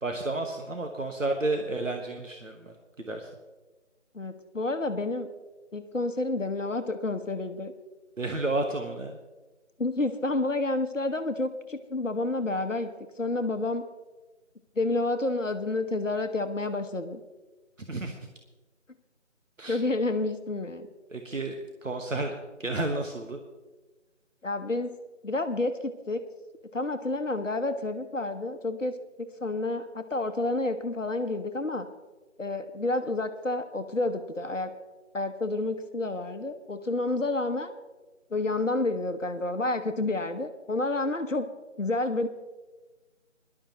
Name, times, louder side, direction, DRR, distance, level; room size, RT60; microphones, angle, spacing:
voice 1, 0.0-3.3 8.2-9.2 17.8-18.2 19.6-19.8 21.1-21.6 21.8-22.3 22.6-23.4, right 2 dB, 85° right, 3 dB, 1.4 m, -31 dB
voice 2, 4.1-5.3 5.7-7.7 9.8-12.9 13.2-13.8 14.8-17.2 19.7-20.9 24.4-24.9 25.2-26.2 26.7-28.9 29.4-31.9 32.4-34.7 35.1-37.7 38.3-41.5 41.8-42.3, left 2 dB, 75° left, 7 dB, 1.1 m, -29 dB
20.0 x 11.5 x 3.0 m, 1.2 s
figure-of-eight pair, 170°, 38 cm